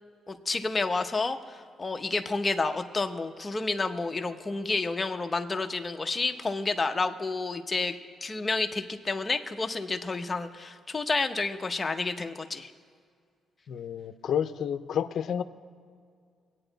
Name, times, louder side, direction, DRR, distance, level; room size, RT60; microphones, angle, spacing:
voice 1, 0.3-7.9 8.2-12.7, left 3 dB, 20° left, 6 dB, 0.8 m, -30 dB
voice 2, 13.7-15.4, left 8 dB, 60° left, 10 dB, 0.6 m, -30 dB
23.5 x 9.0 x 4.0 m, 2.1 s
cardioid pair, 130°, 0 cm